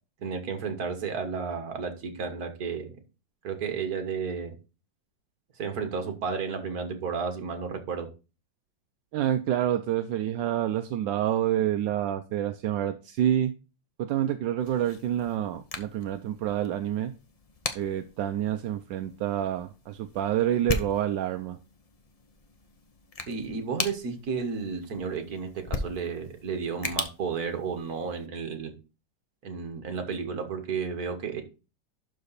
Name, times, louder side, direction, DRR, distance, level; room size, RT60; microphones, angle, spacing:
voice 1, 0.2-2.9 3.4-4.5 5.6-8.1 23.3-28.7 29.4-31.4, right 5 dB, 55° right, 1.8 m, -32 dB
voice 2, 9.1-13.5 14.0-17.1 17.7-21.6, right 11 dB, 80° right, 1.3 m, -28 dB
sound 1, 14.6-28.3, left 3 dB, 50° left, 0.4 m, -39 dB
11.5 x 4.0 x 4.1 m
omnidirectional pair, 2.0 m